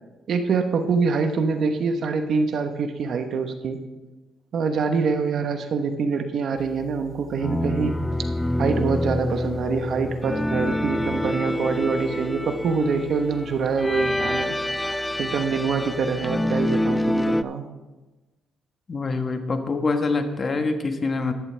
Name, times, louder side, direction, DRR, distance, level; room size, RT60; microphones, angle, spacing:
voice 1, 0.3-3.8 4.5-8.0 8.6-14.5 15.2-17.7, right 5 dB, 60° right, 7 dB, 1.0 m, -25 dB
sound 1, 7.4-17.4, left 1 dB, 10° left, 0.4 m, -26 dB
voice 2, 18.9-21.3, left 3 dB, 35° left, 6 dB, 1.3 m, -25 dB
13.5 x 11.0 x 3.4 m, 1.2 s
cardioid pair, 90°, 0 cm